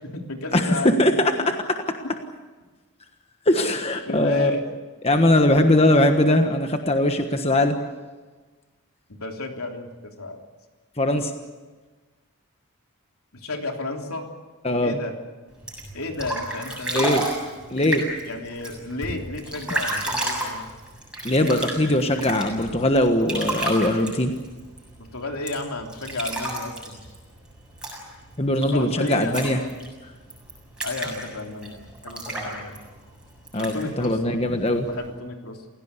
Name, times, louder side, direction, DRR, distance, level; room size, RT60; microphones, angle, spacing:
voice 1, 0.0-0.9 1.4-1.5 4.1-4.6 9.2-10.4 13.3-14.3 14.8-15.2 15.9-17.2 18.2-20.6 25.0-27.0 28.7-29.6 30.8-32.8 33.6-35.6, left 2 dB, 80° left, 3 dB, 3.3 m, -33 dB
voice 2, 0.5-1.6 3.5-4.5 5.0-7.8 11.0-11.3 14.6-15.0 16.9-17.2 17.7-18.0 21.2-24.3 28.4-29.6 33.5-34.9, left 1 dB, 25° left, 5 dB, 1.4 m, -20 dB
sound 1, 15.5-35.1, right 1 dB, 5° right, 7.1 m, -33 dB
29.5 x 17.0 x 8.3 m, 1.3 s
head